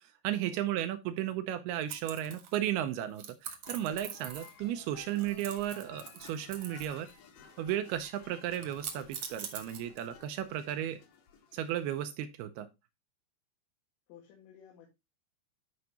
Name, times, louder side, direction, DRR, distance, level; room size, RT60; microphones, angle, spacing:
voice 1, 0.0-7.1 7.6-11.0 11.5-12.7, right 11 dB, 80° right, 9 dB, 2.4 m, -34 dB
sound 1, 1.9-2.7 3.2-4.7 5.0-7.1 7.4-7.9 8.5-10.2, right 7 dB, 60° right, 1.9 m, -43 dB
sound 2, 3.7-12.2, left 7 dB, 65° left, 2.9 m, -56 dB
voice 2, 14.1-14.9, left 9 dB, 85° left, -1 dB, 4.1 m, -55 dB
13.0 x 5.1 x 2.9 m, 0.23 s
omnidirectional pair, 5.1 m